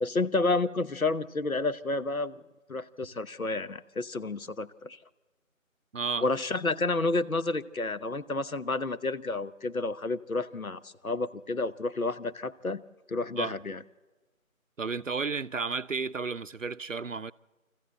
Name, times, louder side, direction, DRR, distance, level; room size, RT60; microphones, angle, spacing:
voice 1, 0.0-2.4 2.7-5.0 6.2-12.8 13.1-13.8, left 3 dB, 75° left, 1.1 m, -30 dB
voice 2, 5.9-6.3 13.4-13.5 14.8-17.3, right 4 dB, 65° right, 0.6 m, -32 dB
24.5 x 14.5 x 7.7 m
figure-of-eight pair, 170°, 42 cm